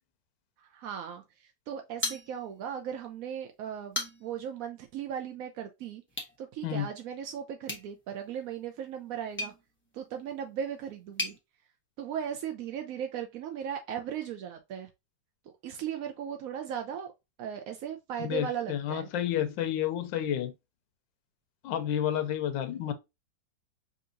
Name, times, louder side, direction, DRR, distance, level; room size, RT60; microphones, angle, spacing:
voice 1, 0.6-6.0 6.4-9.5 9.9-11.3 12.0-14.9 15.6-17.1 17.4-19.1, right 8 dB, 75° right, 0.8 m, -37 dB
sound 1, 2.0-2.8 3.1-3.2 3.7-4.5 6.1-6.4 7.6-11.4, left 2 dB, 10° left, 0.6 m, -38 dB
voice 2, 18.2-20.5 21.6-22.9, left 10 dB, 85° left, 1.3 m, -30 dB
5.2 x 2.8 x 2.6 m
omnidirectional pair, 2.0 m